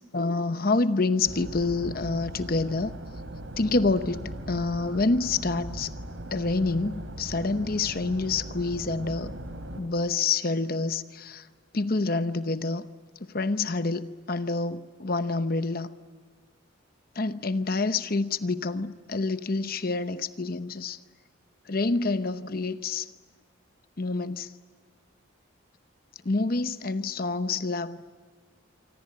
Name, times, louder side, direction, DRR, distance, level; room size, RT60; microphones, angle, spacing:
voice 1, 0.1-2.9 3.6-5.9 6.3-9.3 9.8-11.5 11.7-12.9 13.3-15.9 17.1-21.0 21.7-23.1 24.0-24.5 26.2-28.1, left 3 dB, 45° left, 11 dB, 0.8 m, -27 dB
sound 1, 1.2-9.8, right 1 dB, 75° right, 3.1 m, -39 dB
27.5 x 25.0 x 8.6 m, 1.5 s
head